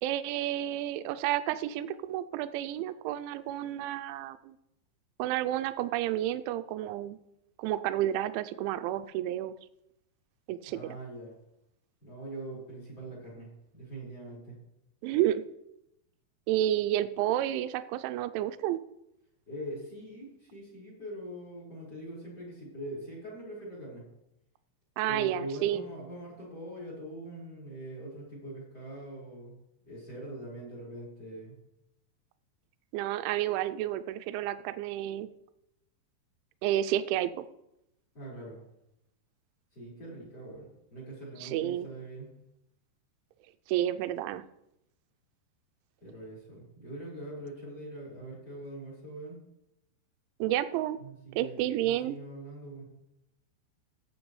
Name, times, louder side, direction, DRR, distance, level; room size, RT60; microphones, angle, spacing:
voice 1, 0.0-4.5 5.2-7.2 7.6-9.6 10.5-10.8 15.0-15.4 16.5-18.8 25.0-25.8 32.9-35.3 36.6-37.4 41.4-41.9 43.7-44.4 50.4-51.0 51.4-52.2, right 12 dB, 85° right, 11 dB, 2.8 m, -30 dB
voice 2, 10.7-11.3 12.0-13.5 13.7-14.5 19.5-24.0 25.1-29.5 29.8-31.5 38.1-38.6 39.7-42.3 46.0-49.4 51.0-52.8, right 1 dB, 20° left, -4 dB, 4.8 m, -42 dB
15.5 x 8.6 x 3.2 m, 0.85 s
omnidirectional pair, 5.6 m